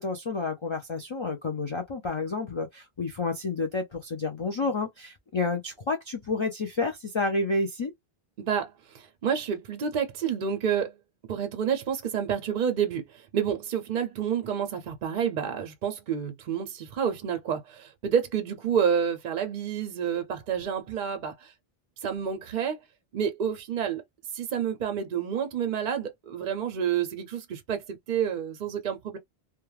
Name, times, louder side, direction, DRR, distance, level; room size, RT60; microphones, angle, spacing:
voice 1, 0.0-7.9, left 3 dB, 50° left, 0.3 m, -30 dB
voice 2, 8.4-10.9 11.3-21.5 22.0-22.8 23.1-24.0 24.3-29.2, right 8 dB, 55° right, 0.6 m, -29 dB
2.3 x 2.2 x 3.1 m
omnidirectional pair, 1.1 m